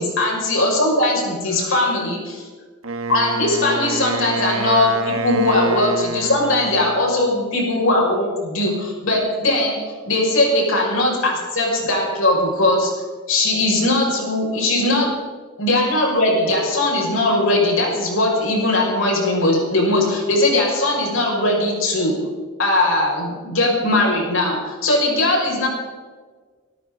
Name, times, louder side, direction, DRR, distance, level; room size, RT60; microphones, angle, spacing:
voice 1, 0.0-2.4 3.1-9.8 10.1-12.9 13.3-15.1 15.6-22.1 22.6-25.7, left 2 dB, 65° left, -1 dB, 6.0 m, -19 dB
Wind instrument woodwind instrument, 2.8-7.0, right 3 dB, 75° right, 1.4 m, -27 dB
26.5 x 13.5 x 4.0 m, 1.4 s
head